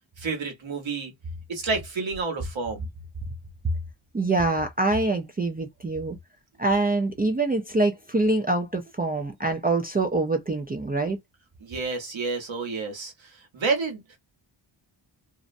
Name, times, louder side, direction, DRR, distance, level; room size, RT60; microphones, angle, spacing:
voice 1, 0.2-1.1 1.5-2.9 11.6-14.2, right 4 dB, 70° right, 1.1 m, -30 dB
voice 2, 4.1-6.2 6.6-11.2, right 2 dB, 20° right, 0.4 m, -25 dB
2.6 x 2.1 x 2.5 m
cardioid pair, 70°, 48 cm